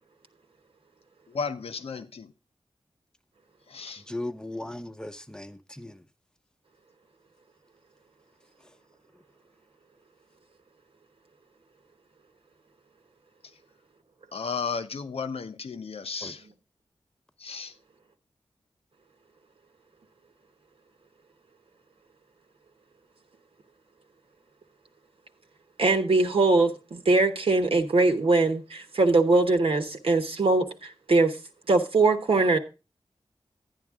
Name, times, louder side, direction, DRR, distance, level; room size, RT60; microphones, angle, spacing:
voice 1, 1.3-2.3 3.7-4.0 14.3-16.5 17.4-17.7, left 5 dB, 80° left, 0.8 m, -34 dB
voice 2, 4.1-6.0 16.2-16.3, left 1 dB, 5° left, 0.8 m, -37 dB
voice 3, 25.8-31.4 31.7-32.6, right 3 dB, 70° right, 1.1 m, -22 dB
11.0 x 9.8 x 3.6 m
wide cardioid pair, 70°, 10 cm